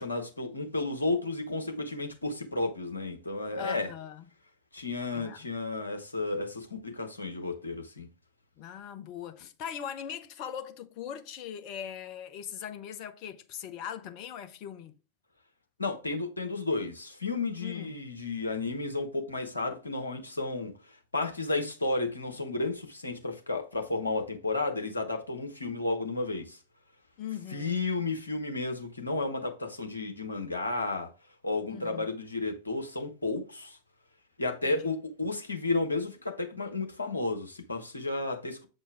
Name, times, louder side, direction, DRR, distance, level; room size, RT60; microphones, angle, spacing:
voice 1, 0.0-3.9 4.7-8.1 15.8-20.7 21.1-26.6 27.5-31.1 31.4-33.8 34.4-38.7, left 3 dB, 80° left, 1.2 m, -32 dB
voice 2, 3.6-4.3 5.1-5.4 8.6-14.9 17.6-18.0 27.2-27.8 31.7-32.1 34.6-34.9, left 9 dB, 40° left, 0.9 m, -40 dB
7.6 x 4.4 x 3.4 m
figure-of-eight pair, 90°, 0 cm